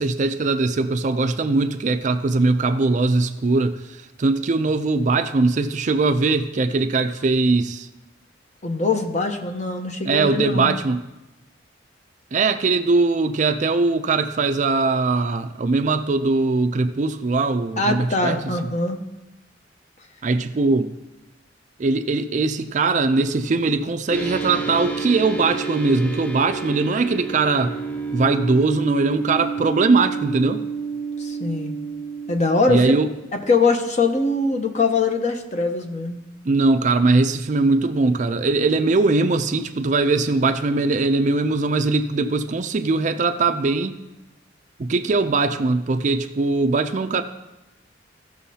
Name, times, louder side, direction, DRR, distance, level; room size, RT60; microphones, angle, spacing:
voice 1, 0.0-7.9 10.1-11.0 12.3-18.4 20.2-20.9 21.8-27.7 28.1-30.6 32.7-33.1 36.4-44.0 44.8-47.2, right 3 dB, 40° right, 9 dB, 0.4 m, -21 dB
voice 2, 8.6-10.7 17.8-19.0 31.2-31.8 32.3-32.9 33.3-36.2, left 3 dB, 35° left, 4 dB, 0.8 m, -22 dB
sound 1, 24.1-32.4, right 5 dB, 10° left, 0.6 m, -29 dB
15.5 x 6.2 x 2.8 m, 1.0 s
head